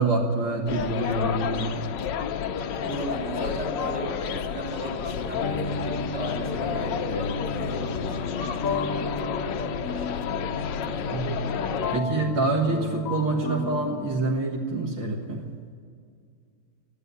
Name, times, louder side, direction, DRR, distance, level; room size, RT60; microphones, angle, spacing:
voice 1, 0.0-1.9 10.9-11.5 11.9-15.5, right 3 dB, 60° right, -3 dB, 2.4 m, -26 dB
sound 1, 0.7-12.0, left 7 dB, 65° left, 1.3 m, -31 dB
voice 2, 2.8-10.1, right 1 dB, 35° right, -4 dB, 6.2 m, -36 dB
sound 2, 2.9-3.1 3.8-14.0, left 3 dB, 45° left, 1.4 m, -33 dB
14.0 x 11.0 x 9.3 m, 2.2 s
omnidirectional pair, 2.3 m